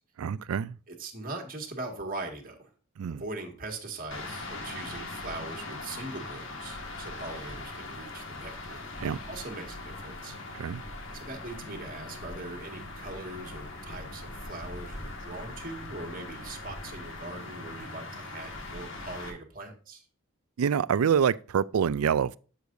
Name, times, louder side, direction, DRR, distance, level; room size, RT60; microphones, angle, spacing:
voice 1, 0.2-0.8 3.0-3.2 9.0-9.2 10.6-10.8 20.6-22.4, right 7 dB, 80° right, 0.4 m, -26 dB
voice 2, 0.9-2.7 3.1-10.4 11.1-20.0, right 2 dB, 40° right, 1.9 m, -41 dB
sound 1, 4.1-19.3, left 2 dB, 60° left, 1.7 m, -41 dB
12.5 x 6.7 x 2.6 m
head